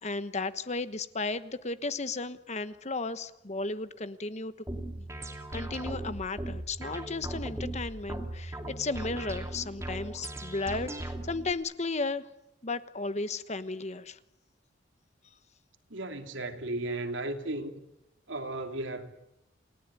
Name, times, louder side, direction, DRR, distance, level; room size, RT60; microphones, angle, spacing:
voice 1, 0.0-4.5 5.0-5.1 5.5-12.2 12.6-14.2, left 3 dB, 35° left, 1.1 m, -34 dB
sound 1, 4.7-11.5, right 1 dB, 15° right, 2.8 m, -38 dB
voice 2, 15.9-17.8 18.3-19.1, right 2 dB, 80° right, 3.0 m, -35 dB
29.0 x 18.0 x 9.7 m
head